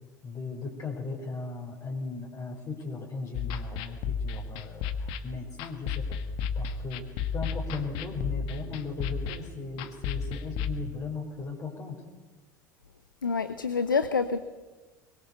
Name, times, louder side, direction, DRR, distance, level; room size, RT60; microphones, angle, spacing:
voice 1, 0.2-6.2 6.5-7.1 7.3-12.0, left 4 dB, 30° left, 0 dB, 5.0 m, -37 dB
sound 1, 3.3-10.7, left 6 dB, 55° left, 1.7 m, -33 dB
voice 2, 13.2-14.4, left 5 dB, 85° left, 12 dB, 0.9 m, -27 dB
23.0 x 22.0 x 7.0 m, 1.3 s
figure-of-eight pair, 75°, 10 cm